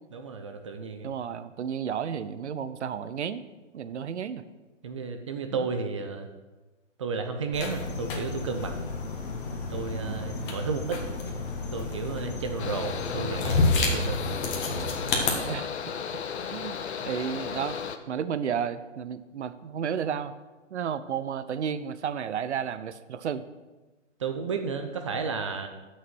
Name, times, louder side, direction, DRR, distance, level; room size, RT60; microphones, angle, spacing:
voice 1, 0.1-1.1 4.8-6.3 7.0-8.8 9.7-11.0 11.7-14.3 16.0-16.2 24.2-25.7, right 5 dB, 25° right, 6 dB, 0.5 m, -33 dB
voice 2, 1.0-3.5 3.7-4.4 5.5-5.7 9.9-10.4 12.0-12.4 14.6-15.0 15.4-15.7 16.1-16.2 16.5-17.8 18.1-20.3 20.7-23.4, right 8 dB, 60° right, 13 dB, 0.7 m, -33 dB
sound 1, 7.5-15.3, left 3 dB, 40° left, 1.7 m, -30 dB
Mechanical fan, 12.6-18.0, left 7 dB, 55° left, 0.8 m, -35 dB
8.2 x 6.5 x 6.2 m, 1.2 s
hypercardioid pair, 140°, 38 cm